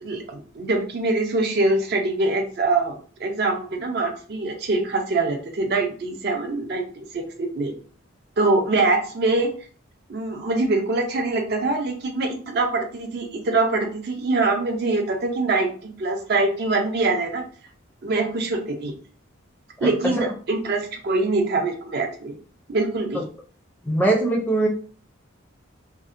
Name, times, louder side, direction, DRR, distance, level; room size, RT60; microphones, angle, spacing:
voice 1, 0.0-7.7 8.4-9.5 10.1-17.4 18.0-18.9 19.8-22.3 22.7-23.2, right 3 dB, 50° right, 3 dB, 0.4 m, -24 dB
voice 2, 23.8-24.7, right 2 dB, 10° left, -1 dB, 0.4 m, -21 dB
2.6 x 2.1 x 2.4 m, 0.43 s
head